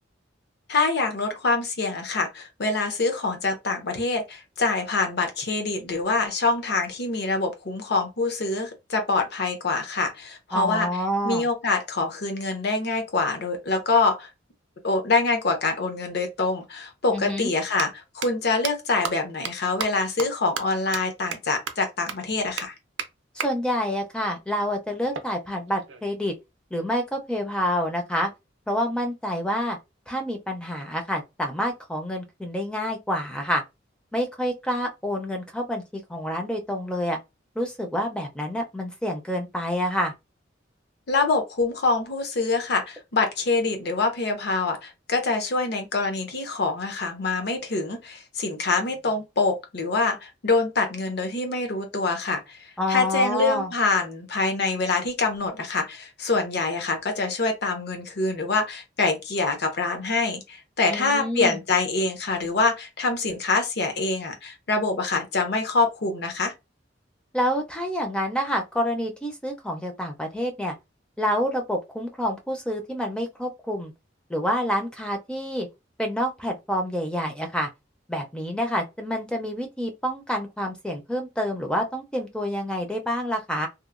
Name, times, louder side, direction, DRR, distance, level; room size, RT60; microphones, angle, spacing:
voice 1, 0.7-10.9 11.2-14.3 14.8-22.7 41.1-66.5, left 3 dB, 60° left, 0.7 m, -25 dB
voice 2, 10.5-11.4 17.1-17.5 23.4-26.3 26.7-28.3 28.7-29.8 30.1-33.6 34.1-37.2 37.6-40.1 52.8-53.7 60.9-61.6 67.3-70.7 71.2-73.9 74.3-75.7 76.0-77.7 78.1-83.7, equal, 5° left, 0.4 m, -28 dB
sound 1, 16.5-16.6 17.6-17.8 18.2-18.3 18.6-18.7 19.0-19.1 19.5-19.6 19.8-19.9 20.2-20.3 20.6-20.7 20.9-21.0 21.3-21.4 21.7-21.8 22.1-22.2 22.6-22.7 23.0-23.1 23.4-23.5 25.1-26.2, right 7 dB, 85° right, 0.4 m, -31 dB
2.8 x 2.1 x 2.4 m
head